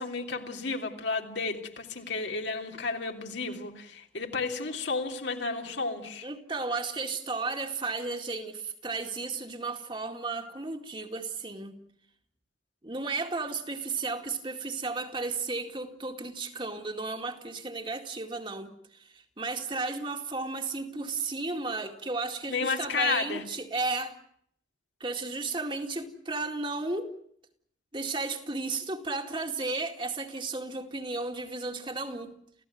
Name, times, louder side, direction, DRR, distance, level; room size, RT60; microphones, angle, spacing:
voice 1, 0.0-6.3 22.5-23.4, left 4 dB, 75° left, 3.2 m, -32 dB
voice 2, 6.2-11.8 12.8-24.2 25.0-27.1 27.9-32.3, right 3 dB, 25° right, 2.2 m, -34 dB
28.5 x 16.0 x 9.5 m
head